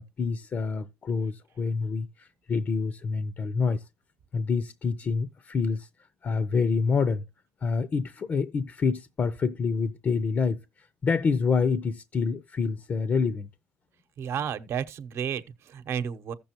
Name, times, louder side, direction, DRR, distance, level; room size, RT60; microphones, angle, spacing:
voice 1, 0.0-3.8 4.3-5.9 6.2-7.2 7.6-13.5, left 5 dB, 40° left, 0.6 m, -27 dB
voice 2, 14.2-16.3, right 8 dB, 60° right, 0.9 m, -32 dB
15.0 x 6.8 x 2.9 m
cardioid pair, 105°, 5 cm